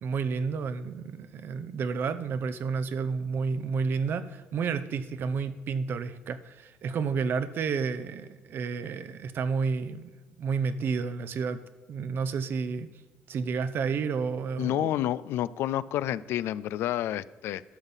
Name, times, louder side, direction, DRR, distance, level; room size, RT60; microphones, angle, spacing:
voice 1, 0.0-10.1 10.4-11.6 11.9-12.9 13.3-14.9, right 5 dB, 60° right, 13 dB, 0.7 m, -30 dB
voice 2, 14.6-17.6, left 12 dB, 80° left, 17 dB, 0.3 m, -29 dB
12.0 x 5.4 x 7.2 m, 1.2 s
cardioid pair, 80°, 4 cm